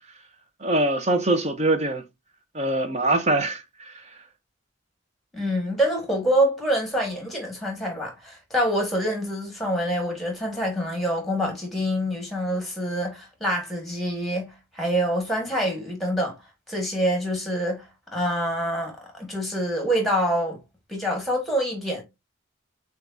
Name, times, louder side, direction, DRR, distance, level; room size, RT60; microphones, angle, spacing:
voice 1, 0.6-2.0 2.5-4.1, right 2 dB, 35° right, 0.6 m, -23 dB
voice 2, 5.3-16.3 16.7-17.9 18.1-20.6 20.9-22.0, equal, ahead, 1.5 m, -26 dB
6.3 x 2.3 x 2.6 m
head